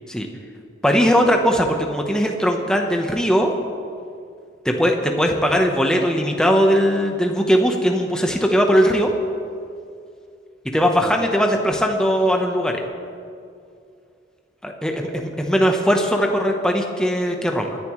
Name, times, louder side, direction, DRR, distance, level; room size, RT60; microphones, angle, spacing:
voice 1, 0.8-3.5 4.6-9.1 10.7-12.8 14.6-17.8, equal, 5° left, 2 dB, 1.0 m, -19 dB
22.5 x 11.0 x 3.2 m, 2.4 s
head